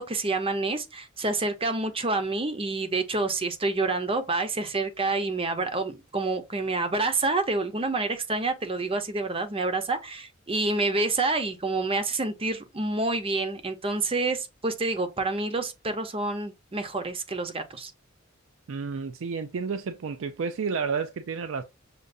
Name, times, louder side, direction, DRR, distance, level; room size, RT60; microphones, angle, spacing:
voice 1, 0.0-17.9, right 3 dB, 30° right, 0.7 m, -28 dB
voice 2, 18.7-21.6, right 5 dB, 70° right, 0.4 m, -31 dB
6.6 x 2.5 x 2.5 m
head